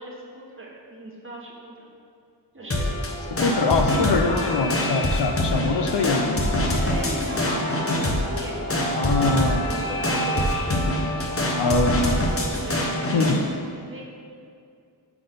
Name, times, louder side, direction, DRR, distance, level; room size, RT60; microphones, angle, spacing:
voice 1, 0.0-1.9 2.5-2.9 3.6-4.6 6.8-8.6 9.2-10.8 11.1-13.5 13.9-14.0, right 2 dB, 30° right, -3 dB, 1.0 m, -38 dB
sound 1, 2.6-10.5, equal, 60° right, 1.0 m, -38 dB
sound 2, 2.7-13.4, left 1 dB, 35° left, 0.8 m, -25 dB
voice 2, 3.3-6.7 8.9-9.6 11.6-12.2 13.1-13.4, left 3 dB, 75° left, 5 dB, 0.6 m, -23 dB
5.9 x 3.9 x 5.0 m, 2.3 s
wide cardioid pair, 90°, 42 cm